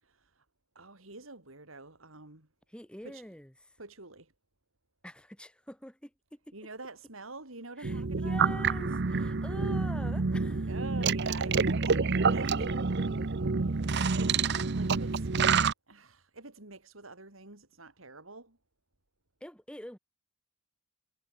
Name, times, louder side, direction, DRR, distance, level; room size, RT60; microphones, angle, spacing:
voice 1, 0.0-0.4 0.7-2.5 3.0-3.2 3.8-4.3 6.5-8.4 10.7-12.7 13.6-15.3 15.9-18.6, right 3 dB, 85° right, 4.5 m, -46 dB
voice 2, 2.7-3.5 5.0-6.5 7.8-10.8 12.2-13.6 19.4-20.0, equal, 5° left, 5.1 m, -46 dB
sound 1, 7.8-15.7, right 4 dB, 60° right, 0.8 m, -28 dB
head